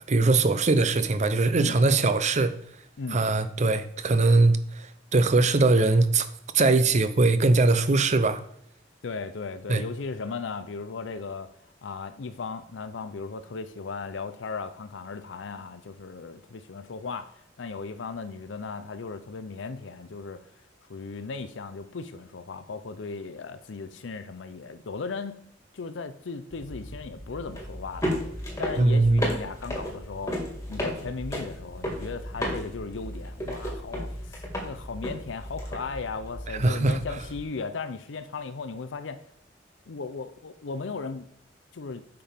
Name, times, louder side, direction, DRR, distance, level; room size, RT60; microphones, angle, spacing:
voice 1, 0.1-2.5 3.1-4.6 5.1-6.3 6.5-8.4 9.7-9.8 28.8-29.2 36.6-37.0, right 3 dB, 40° right, 0.6 m, -21 dB
voice 2, 9.0-11.5 11.8-17.3 17.6-20.4 20.9-25.4 25.7-28.2 28.6-30.4 30.7-39.2 39.9-41.3 41.7-42.0, left 4 dB, 85° left, 0.6 m, -36 dB
sound 1, 26.5-37.4, equal, 15° left, 1.9 m, -34 dB
8.6 x 5.9 x 3.5 m
head